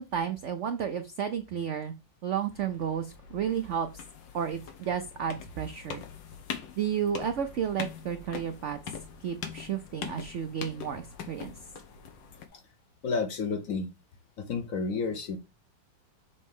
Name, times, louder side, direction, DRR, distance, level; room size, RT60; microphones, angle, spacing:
voice 1, 0.0-1.9 2.2-3.9 4.3-6.0 6.8-8.8 9.2-11.5, right 8 dB, 70° right, 0.7 m, -32 dB
sound 1, 2.5-12.5, left 7 dB, 80° left, 1.7 m, -43 dB
voice 2, 13.0-13.9 14.4-15.4, left 4 dB, 55° left, 1.1 m, -31 dB
6.7 x 3.1 x 5.3 m
omnidirectional pair, 2.0 m